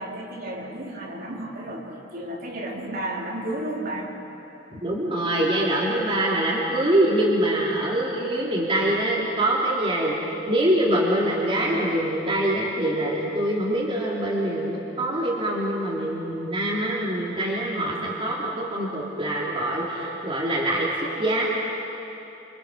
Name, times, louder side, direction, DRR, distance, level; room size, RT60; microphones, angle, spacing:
voice 1, 0.0-4.1, right 1 dB, 55° right, -3 dB, 4.0 m, -32 dB
voice 2, 4.8-20.9 21.2-21.5, right 1 dB, 30° right, -5 dB, 3.1 m, -24 dB
27.5 x 27.0 x 6.3 m, 3.0 s
head